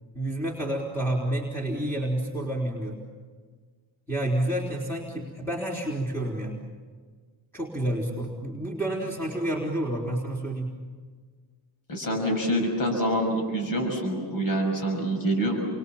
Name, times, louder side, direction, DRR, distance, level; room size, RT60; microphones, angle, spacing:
voice 1, 0.1-3.0 4.1-6.6 7.5-10.7, right 1 dB, 5° left, -4 dB, 4.1 m, -29 dB
voice 2, 11.9-15.7, right 1 dB, 45° left, 3 dB, 6.3 m, -26 dB
30.0 x 24.5 x 7.4 m, 1.6 s
cardioid pair, 110°, 46 cm